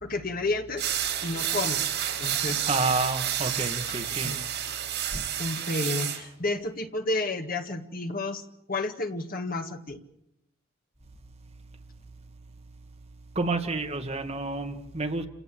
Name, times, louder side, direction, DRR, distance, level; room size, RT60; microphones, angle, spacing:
voice 1, 0.0-1.0 1.2-1.9 2.2-2.7 3.9-4.0 4.2-4.4 5.4-10.0, left 2 dB, 45° left, 6 dB, 1.8 m, -31 dB
sound 1, 0.8-6.2, right 10 dB, 55° right, 4.9 m, -30 dB
voice 2, 2.6-4.4 5.1-5.2 13.4-15.3, right 3 dB, 30° right, 3 dB, 2.0 m, -29 dB
29.0 x 17.0 x 7.8 m, 0.86 s
head